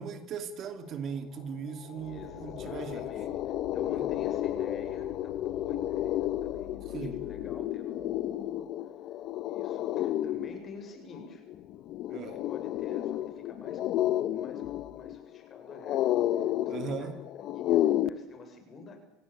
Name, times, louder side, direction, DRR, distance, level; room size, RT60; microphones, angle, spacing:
voice 1, 0.0-3.0 3.9-4.1 6.9-7.2 12.1-12.3 16.7-17.1, right 6 dB, 45° right, 9 dB, 2.6 m, -38 dB
sound 1, 1.5-1.6 1.9-18.1, left 13 dB, 55° left, 1.2 m, -32 dB
sound 2, 1.9-7.7, left 13 dB, 85° left, 4.1 m, -50 dB
voice 2, 2.1-8.7 9.4-11.4 12.1-17.1 17.4-19.0, left 4 dB, 35° left, 6 dB, 7.0 m, -48 dB
27.0 x 17.5 x 8.8 m, 0.89 s
supercardioid pair, 110°, 0 cm